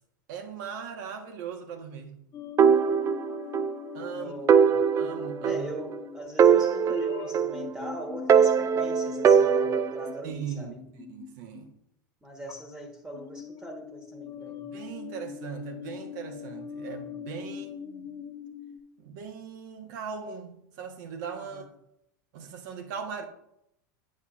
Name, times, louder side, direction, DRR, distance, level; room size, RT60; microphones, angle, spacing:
voice 1, 0.3-2.2 3.9-4.4 5.0-5.7 10.2-11.7 14.7-18.2 19.0-21.7 22.3-23.2, right 7 dB, 65° right, 1.3 m, -39 dB
sound 1, 2.3-11.7 12.5-12.8 13.1-18.8, left 6 dB, 35° left, 0.9 m, -41 dB
sound 2, 2.6-3.8 4.0-4.1 4.5-6.0 6.4-7.8 8.3-10.1, right 7 dB, 30° right, 0.3 m, -21 dB
voice 2, 4.1-4.8 5.4-10.8 12.2-14.7 21.5-21.7, equal, 10° right, 1.3 m, -40 dB
9.0 x 7.0 x 2.5 m
hypercardioid pair, 100°, 11 cm